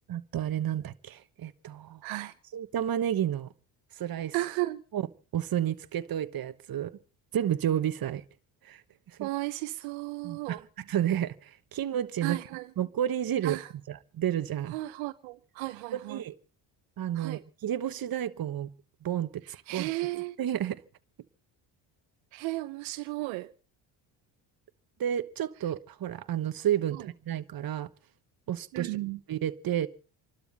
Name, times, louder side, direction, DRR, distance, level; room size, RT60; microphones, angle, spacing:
voice 1, 0.1-2.0 2.5-3.5 4.0-4.3 4.9-5.0 5.3-6.9 7.3-8.2 8.6-8.8 9.2-9.3 10.2-12.4 12.8-13.6 13.9-14.7 15.9-16.3 17.0-18.7 19.0-19.9 20.4-20.8 25.0-27.0 27.2-27.9 28.5-29.0 29.3-29.9, right 10 dB, 50° right, 1.2 m, -31 dB
voice 2, 2.0-2.3 4.3-4.8 9.2-10.6 12.2-12.7 13.4-13.7 14.7-16.2 17.1-17.4 19.7-20.4 22.3-23.5 26.9-27.1 28.7-29.2, right 19 dB, 85° right, 0.8 m, -34 dB
29.0 x 12.0 x 4.1 m
supercardioid pair, 70°, 45 cm